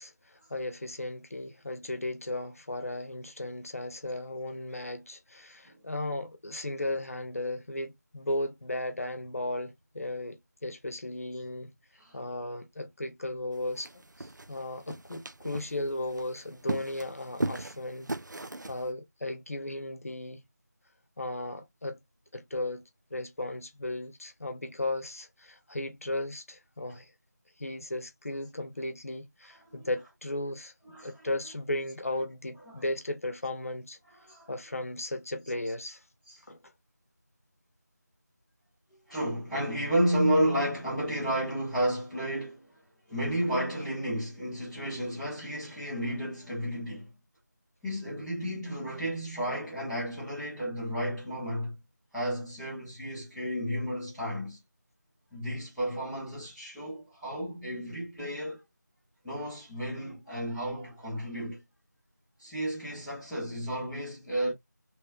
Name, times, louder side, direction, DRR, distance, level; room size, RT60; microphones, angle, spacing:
voice 1, 0.0-11.7 12.1-14.0 14.5-18.1 18.7-20.4 21.2-22.0 22.3-22.8 23.1-27.1 27.6-30.7 31.0-34.0 34.5-36.0 36.5-36.7, left 1 dB, 50° left, 0.9 m, -35 dB
sound 1, 13.5-18.9, right 2 dB, 85° right, 0.6 m, -38 dB
voice 2, 39.1-42.7 43.1-47.1 47.8-51.8 52.1-54.6 55.3-58.6 59.2-61.6 62.4-64.5, equal, ahead, 0.7 m, -32 dB
3.3 x 3.1 x 2.3 m
figure-of-eight pair, 170°, 10 cm